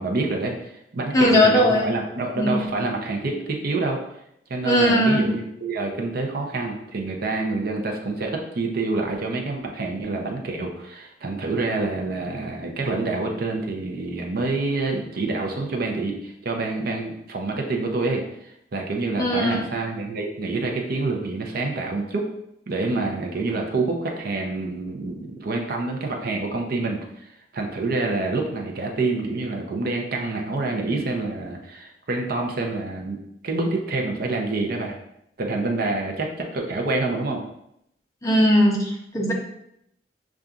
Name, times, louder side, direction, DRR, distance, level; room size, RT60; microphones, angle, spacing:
voice 1, 0.0-4.0 4.5-22.3 22.7-33.2 33.4-35.0 35.4-37.4, right 3 dB, 60° right, 2 dB, 0.6 m, -27 dB
voice 2, 1.1-1.9 2.4-2.6 4.6-5.3 19.2-19.6 38.2-39.3, equal, 20° left, -1 dB, 0.7 m, -19 dB
6.7 x 2.4 x 2.4 m, 0.78 s
head